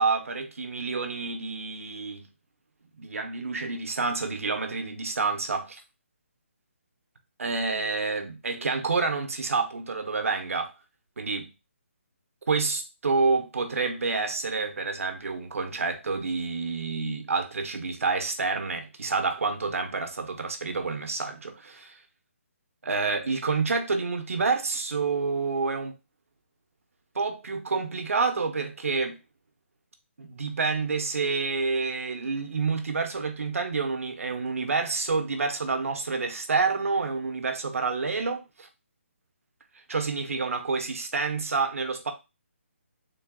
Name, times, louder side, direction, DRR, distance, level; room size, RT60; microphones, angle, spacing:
voice 1, 0.0-2.3 3.0-5.8 7.4-10.7 11.2-11.5 12.5-22.0 22.8-25.9 27.1-29.2 30.2-38.7 39.9-42.1, right 4 dB, 85° right, 0.9 m, -28 dB
3.8 x 2.2 x 3.6 m
hypercardioid pair, 165°, 7 cm